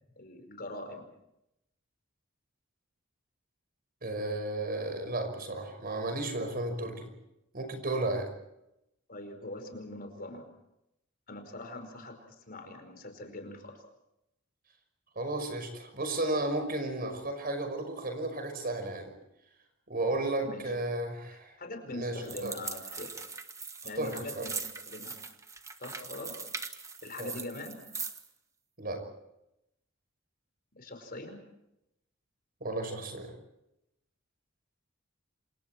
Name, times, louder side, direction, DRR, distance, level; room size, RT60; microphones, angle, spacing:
voice 1, 0.2-1.0 9.1-10.5 11.3-12.2 12.5-13.8 20.4-20.6 21.6-23.1 23.8-24.5 24.9-25.2 25.8-26.3 27.0-27.9 30.7-31.4, left 2 dB, 50° left, 6 dB, 5.1 m, -42 dB
voice 2, 4.0-7.1 7.5-8.3 15.2-19.1 19.9-21.5 21.9-22.5 24.0-24.4 27.2-27.3 28.8-29.0 32.6-33.3, right 2 dB, 50° right, 7 dB, 5.8 m, -33 dB
sound 1, 22.2-28.3, right 4 dB, 15° right, 1.4 m, -41 dB
28.0 x 27.5 x 4.6 m, 0.85 s
head